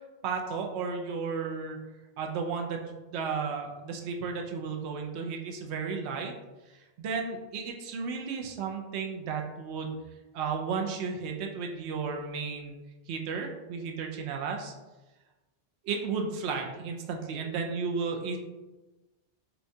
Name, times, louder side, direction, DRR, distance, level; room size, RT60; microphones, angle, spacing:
voice 1, 0.2-1.8 2.2-2.8 3.1-6.3 7.0-10.0 10.3-12.7 13.1-14.7 15.8-18.4, right 5 dB, 75° right, 2 dB, 0.8 m, -33 dB
5.5 x 2.2 x 2.7 m, 1.1 s
omnidirectional pair, 1.2 m